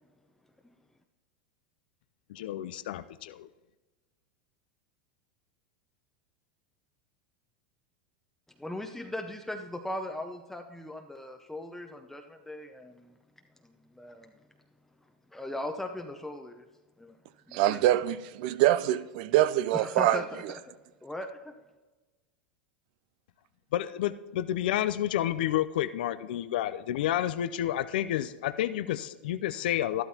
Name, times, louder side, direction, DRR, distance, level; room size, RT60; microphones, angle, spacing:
voice 1, 2.3-3.5 23.7-30.0, left 12 dB, 75° left, 0.4 m, -30 dB
voice 2, 8.6-13.1 13.6-14.3 15.3-16.7 17.0-17.2 17.5-18.1 19.7-20.6 21.0-21.5, left 1 dB, 5° left, 0.7 m, -39 dB
voice 3, 17.5-20.2, right 14 dB, 65° right, 0.5 m, -24 dB
12.5 x 12.0 x 2.9 m
hypercardioid pair, 100°, 5 cm